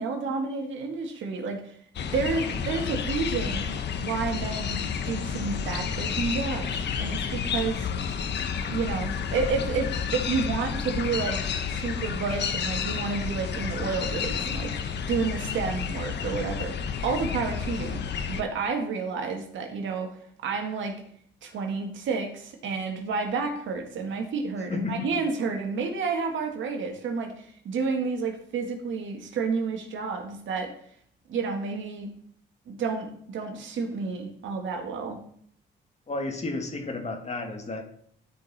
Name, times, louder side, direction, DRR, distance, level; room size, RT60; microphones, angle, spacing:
voice 1, 0.0-1.8 2.1-3.7 4.0-7.9 8.6-16.8 17.0-18.0 18.3-20.2 20.4-21.0 21.4-30.7 31.3-32.1 32.7-35.2, right 4 dB, 75° right, 3 dB, 2.0 m, -30 dB
sound 1, 2.0-18.4, left 7 dB, 60° left, 1.1 m, -30 dB
voice 2, 24.7-25.1 36.1-37.8, left 3 dB, 35° left, 4 dB, 2.0 m, -32 dB
13.0 x 5.4 x 4.2 m, 0.63 s
cardioid pair, 90°, 20 cm